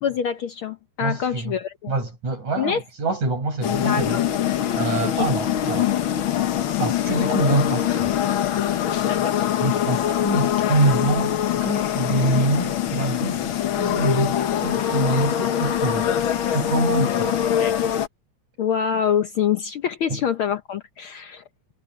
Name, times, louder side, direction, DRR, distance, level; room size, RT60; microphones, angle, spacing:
voice 1, 0.0-1.9 2.6-2.8 3.9-4.2 5.0-5.2 9.0-9.4 17.6-17.7 18.6-21.4, left 8 dB, 75° left, 1.2 m, -25 dB
voice 2, 1.0-1.5 1.9-4.2 4.8-5.9 6.8-8.1 9.6-11.3 11.6-14.4 14.6-16.1 16.5-17.4 20.1-20.2, right 2 dB, 70° right, 9.2 m, -25 dB
sound 1, 3.6-18.1, left 10 dB, 55° left, 1.5 m, -23 dB
omnidirectional pair, 3.5 m